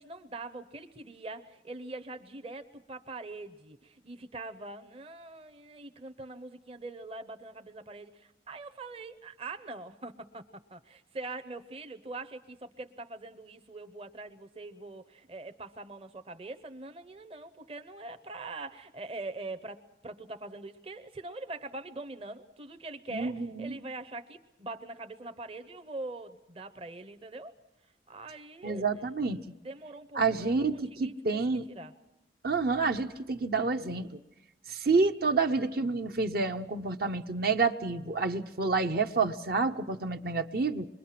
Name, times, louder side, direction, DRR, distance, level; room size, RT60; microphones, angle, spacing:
voice 1, 0.0-10.4 10.7-27.5 28.1-29.1 29.6-31.9, right 2 dB, 35° right, 7 dB, 0.8 m, -43 dB
voice 2, 23.1-23.8 28.6-29.4 30.2-31.7 32.4-34.1 34.7-40.9, right 4 dB, 55° right, 7 dB, 0.9 m, -29 dB
26.5 x 22.0 x 5.9 m, 1.0 s
head